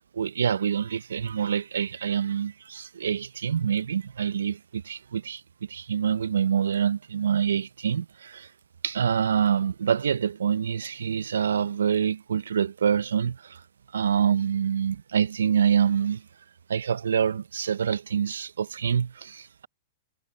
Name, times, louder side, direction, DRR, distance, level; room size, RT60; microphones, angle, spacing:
voice 1, 0.2-5.4 5.7-8.5 8.8-13.6 13.9-16.2 16.7-19.7, right 8 dB, 80° right, 0.7 m, -26 dB
hypercardioid pair, 105°, 0 cm